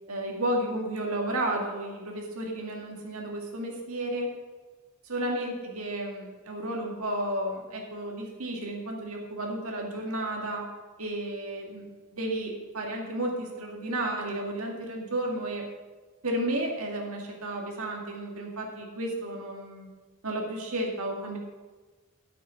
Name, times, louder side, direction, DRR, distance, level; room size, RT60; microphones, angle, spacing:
voice 1, 0.1-4.3 5.0-10.6 11.0-15.7 16.2-19.9 20.2-21.4, right 1 dB, 80° right, 0 dB, 2.1 m, -32 dB
9.8 x 7.5 x 5.7 m, 1.3 s
head